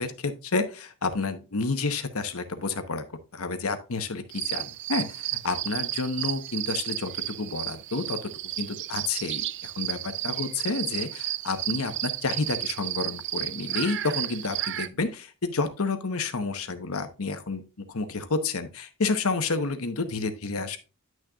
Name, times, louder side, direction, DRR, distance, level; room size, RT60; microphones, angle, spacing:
voice 1, 0.0-3.0 3.3-8.3 8.6-20.8, left 3 dB, 70° left, 9 dB, 1.0 m, -30 dB
sound 1, 4.3-14.9, right 15 dB, 55° right, 0.4 m, -33 dB
10.5 x 6.4 x 2.4 m, 0.32 s
head